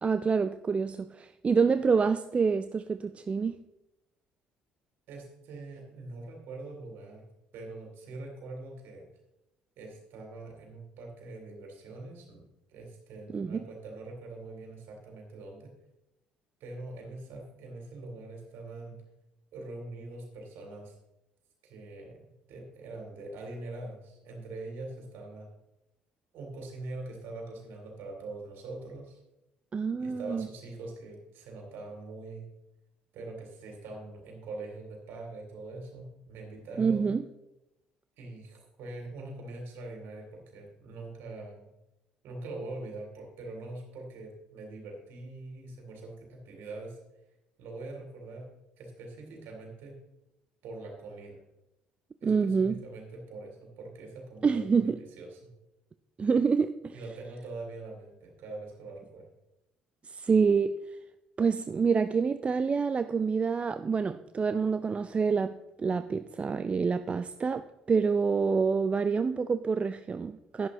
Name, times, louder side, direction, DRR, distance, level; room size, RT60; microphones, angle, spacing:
voice 1, 0.0-3.6 13.3-13.6 29.7-30.5 36.8-37.2 52.2-52.8 54.4-55.0 56.2-57.0 60.0-60.8 61.4-70.7, right 5 dB, 30° right, 0.4 m, -27 dB
voice 2, 5.1-7.2 7.5-9.1 9.8-12.4 12.7-15.7 16.6-19.0 19.5-20.9 21.6-25.5 26.3-29.2 30.0-32.5 33.1-37.1 38.2-41.7 42.2-47.0 47.6-48.5 48.8-50.0 50.6-51.4 52.2-55.5 56.9-59.3, right 2 dB, 60° right, 3.0 m, -43 dB
11.0 x 10.0 x 3.1 m
figure-of-eight pair, 55°, 4 cm